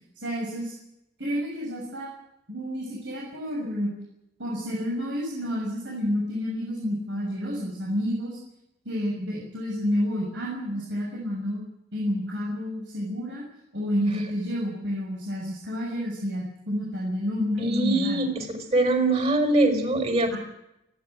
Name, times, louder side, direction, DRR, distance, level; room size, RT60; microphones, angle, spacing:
voice 1, 0.2-0.7 1.2-2.1 2.5-3.9 4.4-8.4 8.8-11.6 11.9-13.4 13.7-18.2 20.3-20.4, equal, 90° right, -4 dB, 6.6 m, -29 dB
voice 2, 17.6-20.4, right 2 dB, 35° right, 5 dB, 5.1 m, -23 dB
29.5 x 11.5 x 9.2 m, 0.83 s
head